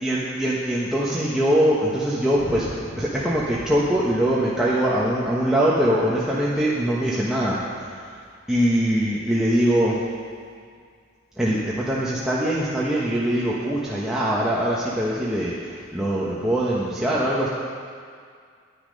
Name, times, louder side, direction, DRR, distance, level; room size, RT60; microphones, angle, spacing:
voice 1, 0.0-2.7 3.0-7.6 7.9-8.0 8.5-10.0 11.4-17.5, right 1 dB, 5° right, -7 dB, 1.1 m, -22 dB
sound 1, 2.3-6.7, left 1 dB, 70° left, 1.7 m, -40 dB
10.5 x 9.7 x 5.3 m, 2.1 s
head